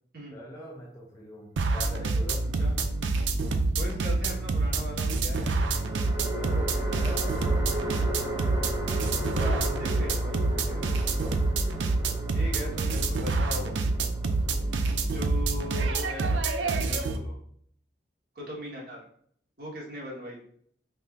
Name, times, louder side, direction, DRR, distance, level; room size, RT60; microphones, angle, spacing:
voice 1, 0.3-2.4 6.3-8.4 9.3-10.2 10.7-11.4 14.1-14.6, left 1 dB, 20° left, -4 dB, 0.6 m, -43 dB
sound 1, 1.6-17.2, right 3 dB, 80° right, 0.5 m, -27 dB
sound 2, 2.3-3.2 5.4-16.8, right 1 dB, 20° right, 0.8 m, -37 dB
voice 2, 3.8-5.6 9.4-10.8 12.3-13.8 14.6-17.4 18.3-19.0 19.6-20.4, left 1 dB, 55° right, -4 dB, 1.7 m, -40 dB
5.3 x 3.2 x 2.7 m, 0.62 s
head